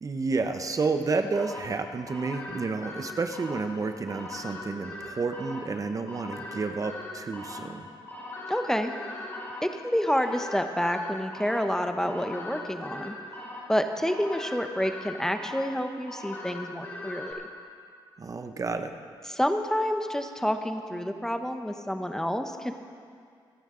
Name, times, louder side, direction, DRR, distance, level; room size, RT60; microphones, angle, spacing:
voice 1, 0.0-7.9 18.2-18.9, right 4 dB, 40° right, 7 dB, 0.9 m, -30 dB
sound 1, 1.3-17.3, left 2 dB, 25° left, 4.5 m, -41 dB
voice 2, 8.5-8.9 9.6-13.1 13.7-17.4 19.3-22.7, equal, 5° left, 6 dB, 0.8 m, -28 dB
27.5 x 9.2 x 3.8 m, 2.2 s
cardioid pair, 80°, 9 cm